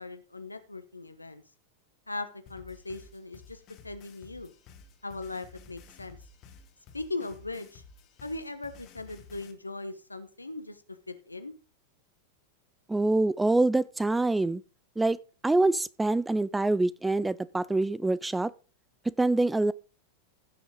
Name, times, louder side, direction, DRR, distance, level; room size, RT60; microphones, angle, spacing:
voice 1, 0.0-1.4 2.1-4.5 5.0-6.2 6.9-7.8 8.2-10.8 11.1-11.5, left 2 dB, 85° left, 1.1 m, -39 dB
sound 1, 2.5-9.5, left 4 dB, 40° left, 1.8 m, -53 dB
voice 2, 12.9-14.6 15.0-15.2 15.4-18.5 19.2-19.7, right 2 dB, 10° right, 0.4 m, -25 dB
15.5 x 6.2 x 3.8 m
figure-of-eight pair, 90°, 0 cm